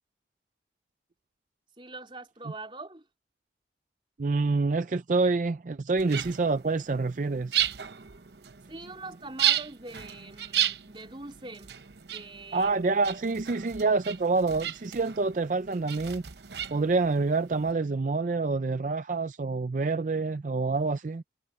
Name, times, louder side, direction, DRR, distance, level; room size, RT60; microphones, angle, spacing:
voice 1, 1.8-3.0 8.7-11.8 12.1-12.8, right 2 dB, 30° right, 3.7 m, -43 dB
voice 2, 4.2-7.6 12.5-16.2 16.7-21.2, right 3 dB, 45° right, 0.4 m, -27 dB
sound 1, 6.0-17.7, right 11 dB, 70° right, 0.9 m, -34 dB
head